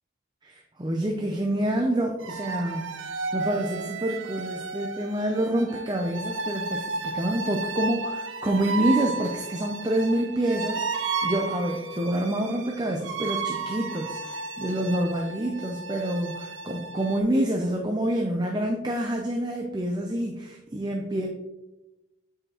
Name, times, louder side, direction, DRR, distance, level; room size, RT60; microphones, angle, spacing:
voice 1, 0.4-21.3, right 1 dB, 20° right, 2 dB, 0.5 m, -27 dB
sound 1, 2.2-17.2, right 4 dB, 90° right, 0.6 m, -33 dB
8.7 x 4.9 x 3.0 m, 0.98 s
head